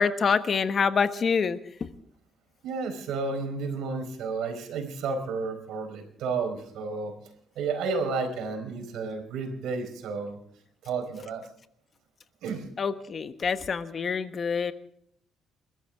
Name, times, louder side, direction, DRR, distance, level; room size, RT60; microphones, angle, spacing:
voice 1, 0.0-1.9 12.8-14.7, left 5 dB, 45° left, 10 dB, 1.3 m, -26 dB
voice 2, 2.6-7.1 7.5-10.4 10.8-11.5 12.4-12.6, right 4 dB, 85° right, 6 dB, 4.6 m, -32 dB
29.0 x 13.5 x 3.6 m, 0.65 s
cardioid pair, 90°, 0 cm